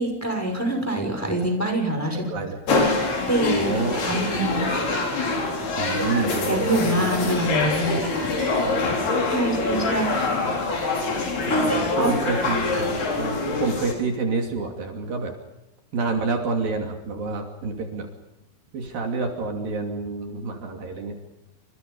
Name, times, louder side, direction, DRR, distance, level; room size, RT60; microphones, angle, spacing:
voice 1, 0.0-2.3 3.0-3.7 4.1-4.7 6.1-8.1 9.3-10.3 11.5-12.2 12.7-12.8, right 1 dB, 5° left, 3 dB, 5.5 m, -25 dB
voice 2, 2.1-2.6 3.5-4.5 5.8-7.1 8.3-9.6 9.9-10.0 11.4-11.6 12.0-15.3 15.9-18.1 18.7-21.2, right 4 dB, 60° right, 3 dB, 4.3 m, -29 dB
sound 1, 2.7-13.9, left 3 dB, 75° left, 6.8 m, -25 dB
29.5 x 27.5 x 5.4 m, 0.90 s
omnidirectional pair, 4.6 m